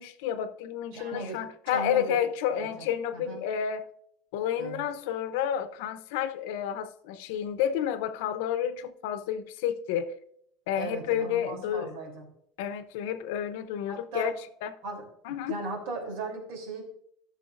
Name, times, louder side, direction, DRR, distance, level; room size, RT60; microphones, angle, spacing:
voice 1, 0.0-3.8 4.3-10.1 10.7-11.9 12.6-14.3 14.6-14.7 15.2-15.6, left 9 dB, 75° left, 0.8 m, -30 dB
voice 2, 0.9-1.4 1.7-2.2 2.5-3.4 4.6-4.8 10.8-12.3 13.9-14.3 14.8-15.1 15.5-16.8, right 2 dB, 80° right, 3.2 m, -37 dB
13.5 x 6.6 x 2.6 m
cardioid pair, 155°, 0 cm